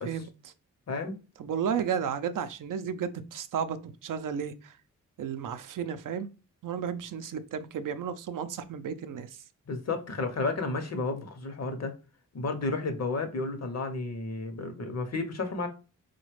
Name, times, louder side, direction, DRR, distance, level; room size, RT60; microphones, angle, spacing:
voice 1, 1.4-4.8 5.2-6.3 6.6-9.4, right 7 dB, 75° right, 0.5 m, -33 dB
voice 2, 9.7-11.9 12.3-15.7, left 3 dB, 55° left, 0.7 m, -32 dB
4.0 x 2.2 x 3.1 m
cardioid pair, 80°, 32 cm